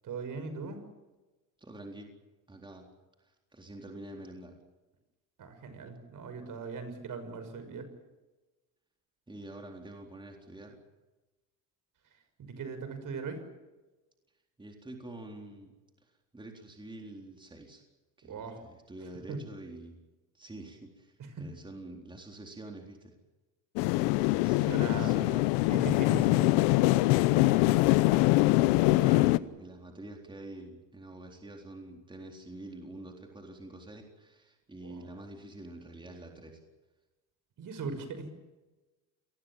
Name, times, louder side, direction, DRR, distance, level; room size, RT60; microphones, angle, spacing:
voice 1, 0.0-0.8 5.4-7.9 12.4-13.4 18.2-18.6 19.3-19.4 21.2-21.5 24.6-25.3 25.7-26.6 34.8-35.1 37.6-38.3, right 4 dB, 50° right, 9 dB, 6.1 m, -39 dB
voice 2, 1.6-2.1 2.5-2.9 3.2-4.5 9.3-10.8 14.6-15.7 16.0-17.8 18.2-20.0 20.3-23.1 24.4-25.4 26.7-27.8 28.2-36.6, right 2 dB, 10° right, 2 dB, 3.9 m, -47 dB
sound 1, 23.8-29.4, left 20 dB, 80° left, 0.9 m, -24 dB
28.0 x 20.5 x 7.5 m, 1.2 s
supercardioid pair, 95°, 41 cm